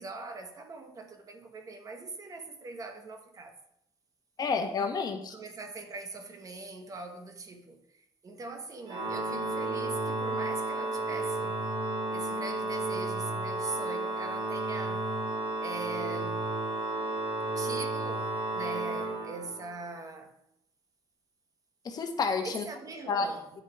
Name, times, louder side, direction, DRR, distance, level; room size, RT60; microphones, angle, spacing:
voice 1, 0.0-3.6 5.3-7.8 8.2-11.6 12.1-15.1 15.6-16.5 17.5-20.3 22.4-23.5, right 3 dB, 35° right, 1.1 m, -42 dB
voice 2, 4.4-5.3 21.8-22.6 23.1-23.3, left 4 dB, 40° left, 1.1 m, -30 dB
Organ, 8.9-19.8, right 2 dB, 65° right, 2.0 m, -32 dB
9.3 x 6.2 x 3.5 m
cardioid pair, 120°, 10 cm